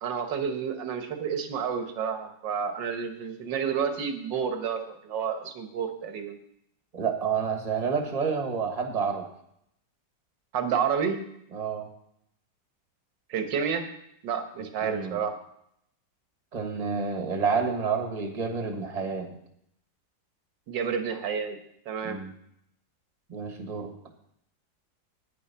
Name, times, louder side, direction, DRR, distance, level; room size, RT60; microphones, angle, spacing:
voice 1, 0.0-6.4 10.5-11.2 13.3-13.9 14.2-15.3 20.7-21.6 21.9-22.2, right 7 dB, 80° right, 6 dB, 1.9 m, -30 dB
voice 2, 6.9-9.3 11.5-11.9 14.8-15.2 16.5-19.4 22.0-22.3 23.3-23.9, right 5 dB, 25° right, 4 dB, 1.3 m, -29 dB
9.5 x 9.5 x 5.5 m, 0.74 s
omnidirectional pair, 1.9 m